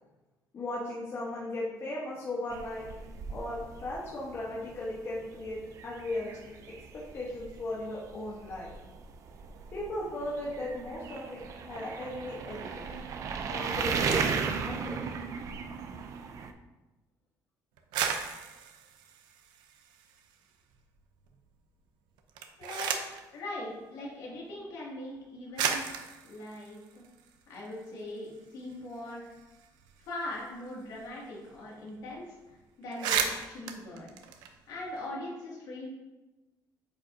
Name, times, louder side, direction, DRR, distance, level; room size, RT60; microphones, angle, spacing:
voice 1, 0.5-2.9 3.3-6.4 6.9-8.7 9.7-12.9 13.5-15.0, left 1 dB, 35° left, -5 dB, 1.2 m, -37 dB
sound 1, 2.5-16.5, right 5 dB, 50° right, 0.6 m, -36 dB
sound 2, 17.8-20.3 20.7-21.4 22.2-23.3 24.3-24.4 25.1-25.2 25.6-27.9 28.2-28.3 28.6-31.2 31.5-31.6 31.9-32.1 32.5-32.6 32.8-35.0, right 7 dB, 85° right, 0.7 m, -35 dB
voice 2, 22.6-23.0 23.3-26.8 27.5-29.3 30.0-32.3 32.8-34.1 34.7-35.9, left 1 dB, 65° left, -4 dB, 2.4 m, -40 dB
8.9 x 5.2 x 2.8 m, 1.1 s
cardioid pair, 155°, 7 cm